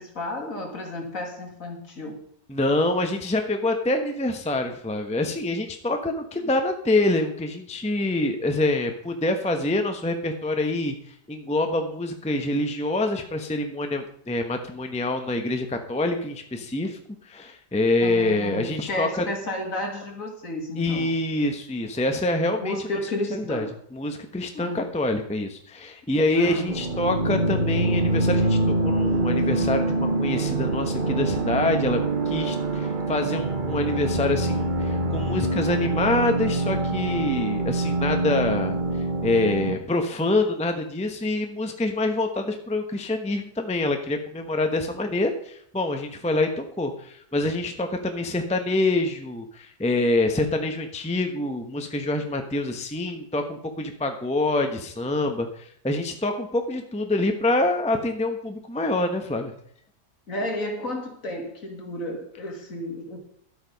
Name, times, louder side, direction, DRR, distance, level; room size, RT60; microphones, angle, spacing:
voice 1, 0.0-2.2 18.0-21.4 22.6-23.7 24.5-24.9 26.3-26.7 60.3-63.2, left 1 dB, 55° left, 3 dB, 2.5 m, -32 dB
voice 2, 2.5-17.0 17.2-19.2 20.8-22.7 23.3-23.7 23.9-32.0 32.3-38.8 39.2-59.5, left 2 dB, 5° left, 5 dB, 0.9 m, -26 dB
sound 1, 26.7-39.7, right 2 dB, 35° right, 1.2 m, -25 dB
11.5 x 8.5 x 5.3 m, 0.65 s
omnidirectional pair, 1.7 m